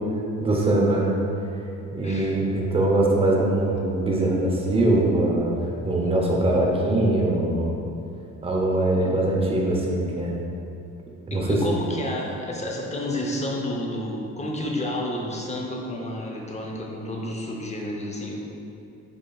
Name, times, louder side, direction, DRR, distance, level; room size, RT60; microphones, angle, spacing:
voice 1, 0.4-1.1 1.9-5.5 5.8-7.7 8.4-10.4 11.3-11.6, right 2 dB, 20° right, -2 dB, 0.7 m, -22 dB
voice 2, 2.0-2.5 6.0-6.1 8.9-9.6 11.3-18.5, left 1 dB, 20° left, -1 dB, 0.7 m, -31 dB
5.1 x 4.1 x 2.3 m, 2.7 s
cardioid pair, 90°, 30 cm